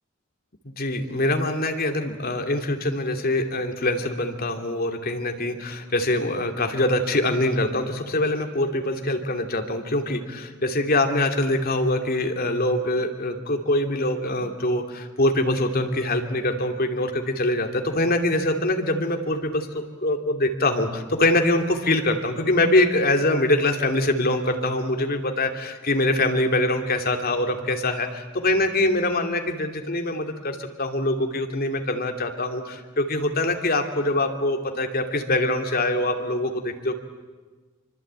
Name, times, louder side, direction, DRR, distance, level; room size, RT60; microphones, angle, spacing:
voice 1, 0.6-36.9, left 1 dB, 45° left, 5 dB, 2.8 m, -24 dB
26.0 x 25.0 x 8.9 m, 1.3 s
head